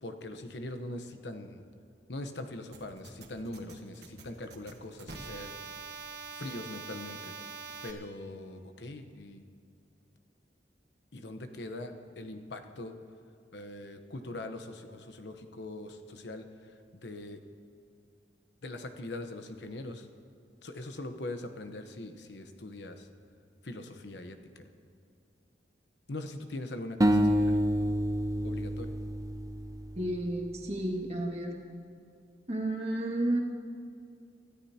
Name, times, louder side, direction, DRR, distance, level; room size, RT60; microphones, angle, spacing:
voice 1, 0.0-1.6 2.1-5.5 6.3-7.3 7.8-9.4 11.1-12.9 13.5-17.4 18.6-20.1 20.6-23.1 23.6-24.7 26.1-27.6 28.4-28.9, left 2 dB, 80° left, 7 dB, 1.0 m, -42 dB
sound 1, 2.7-7.9, right 4 dB, 65° right, 1.5 m, -44 dB
sound 2, 27.0-30.2, equal, 20° right, 0.6 m, -28 dB
voice 2, 30.0-31.5 32.5-33.4, right 1 dB, 35° right, 0 dB, 2.0 m, -31 dB
25.5 x 13.5 x 2.9 m, 2.5 s
head